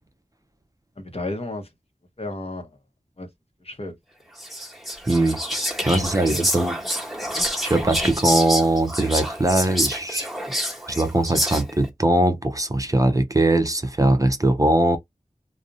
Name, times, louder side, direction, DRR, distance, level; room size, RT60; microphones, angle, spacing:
voice 1, 1.0-1.7 2.2-2.7 3.2-3.3 3.6-3.9 6.0-6.5, left 2 dB, 45° left, 0.7 m, -32 dB
Whispering, 4.4-11.9, equal, ahead, 1.0 m, -27 dB
voice 2, 5.1-6.8 7.6-10.3 10.9-15.0, right 2 dB, 25° right, 0.4 m, -21 dB
2.4 x 2.0 x 2.6 m
wide cardioid pair, 50°, 14 cm